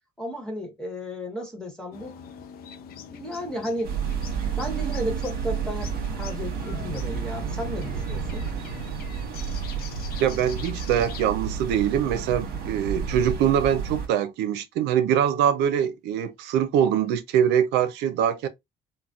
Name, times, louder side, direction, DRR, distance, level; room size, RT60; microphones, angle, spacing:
voice 1, 0.2-2.1 3.1-3.9 4.6-8.5, equal, 5° left, 1.2 m, -33 dB
sound 1, 1.9-11.3, left 9 dB, 65° left, 0.5 m, -43 dB
sound 2, 3.8-14.1, right 6 dB, 65° right, 1.1 m, -31 dB
voice 2, 10.2-18.5, right 9 dB, 85° right, 0.6 m, -23 dB
3.9 x 2.1 x 2.4 m
cardioid pair, 110°, 17 cm